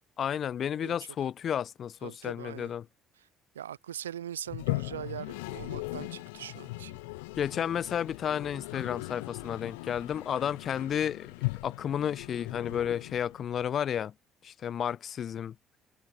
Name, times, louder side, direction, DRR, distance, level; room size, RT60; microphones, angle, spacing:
voice 1, 0.2-2.8 7.4-11.3 11.6-14.1 14.4-15.5, left 9 dB, 50° left, 5.7 m, -32 dB
voice 2, 2.0-2.7 3.2-3.3 3.6-7.0, right 10 dB, 85° right, 3.4 m, -41 dB
Toilet flush, 4.5-13.6, left 26 dB, 75° left, 7.7 m, -38 dB
hypercardioid pair, 55°, 0 cm